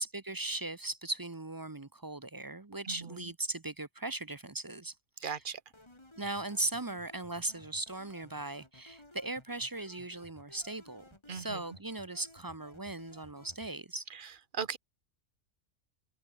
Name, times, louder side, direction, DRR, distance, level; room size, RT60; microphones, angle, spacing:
voice 1, 0.0-4.9 5.2-5.4 6.2-14.0, right 2 dB, 20° right, 0.7 m, -38 dB
voice 2, 2.8-3.3 5.2-5.6 11.3-11.6 14.1-14.8, right 6 dB, 45° right, 1.5 m, -39 dB
sound 1, 5.7-13.7, left 1 dB, 20° left, 3.0 m, -57 dB
omnidirectional pair, 1.3 m